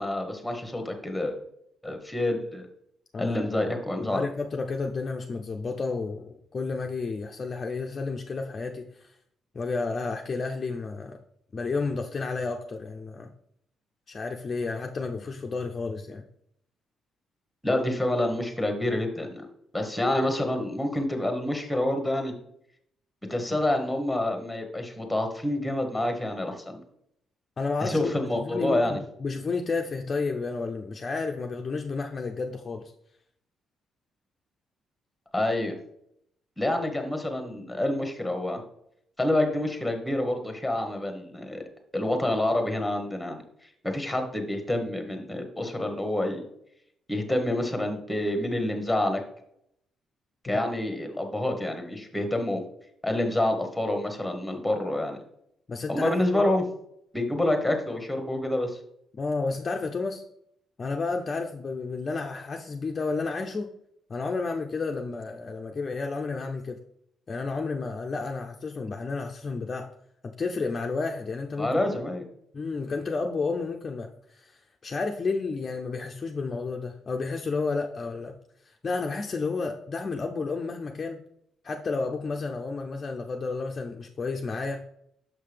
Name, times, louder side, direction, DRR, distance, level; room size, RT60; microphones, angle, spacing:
voice 1, 0.0-1.4 1.8-2.6 3.2-4.2 17.6-19.5 19.7-22.3 23.3-26.8 27.8-29.0 35.3-35.7 36.6-38.6 39.2-41.6 41.9-43.4 43.8-46.4 47.1-49.2 50.4-52.6 53.0-55.2 55.9-56.6 57.1-58.8 71.6-72.2, left 1 dB, 5° left, 5 dB, 1.1 m, -27 dB
voice 2, 3.1-3.5 4.0-9.1 9.5-11.2 11.5-13.3 14.1-16.2 27.6-28.1 28.4-32.9 50.5-50.6 55.7-56.5 59.1-60.2 60.8-63.7 64.1-66.8 67.3-69.9 70.2-71.8 72.5-78.4 78.6-81.2 81.6-84.8, left 4 dB, 30° left, 3 dB, 0.5 m, -31 dB
6.3 x 5.6 x 3.3 m, 0.73 s
cardioid pair, 135°, 0 cm